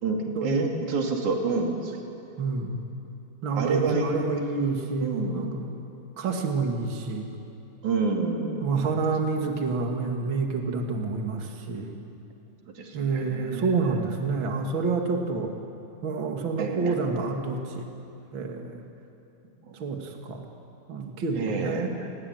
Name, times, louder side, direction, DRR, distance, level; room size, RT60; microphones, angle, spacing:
voice 1, 0.0-2.0 3.6-4.3 5.0-5.5 7.8-8.7 12.8-14.0 16.6-17.0 19.6-19.8 21.4-22.1, right 4 dB, 65° right, 1 dB, 4.1 m, -28 dB
voice 2, 2.4-2.8 3.4-5.7 6.2-7.3 8.6-11.9 12.9-15.5 16.0-17.9 18.3-18.8 19.8-20.5 20.9-21.9, right 4 dB, 40° right, 2 dB, 2.7 m, -28 dB
28.5 x 20.5 x 9.3 m, 2.8 s
omnidirectional pair, 3.8 m